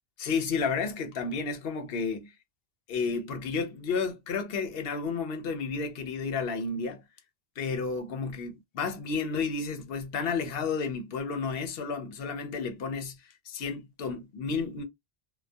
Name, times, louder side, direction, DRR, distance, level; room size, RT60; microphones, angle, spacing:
voice 1, 0.2-2.3 2.9-7.0 7.6-13.2 13.5-14.8, left 5 dB, 70° left, 0.8 m, -31 dB
2.6 x 2.2 x 2.2 m
omnidirectional pair, 1.1 m